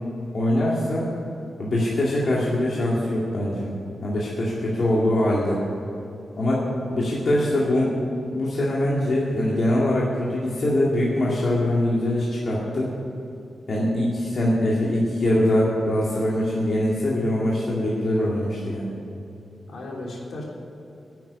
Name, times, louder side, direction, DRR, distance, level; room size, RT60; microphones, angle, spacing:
voice 1, 0.3-1.1 1.6-3.7 4.0-5.6 6.4-6.6 6.9-7.9 8.3-12.9 13.7-18.9, left 1 dB, 50° left, -5 dB, 2.1 m, -23 dB
voice 2, 6.6-7.0 19.7-20.4, left 2 dB, 70° left, -2 dB, 3.3 m, -36 dB
10.5 x 9.1 x 9.6 m, 2.8 s
wide cardioid pair, 155°, 0 cm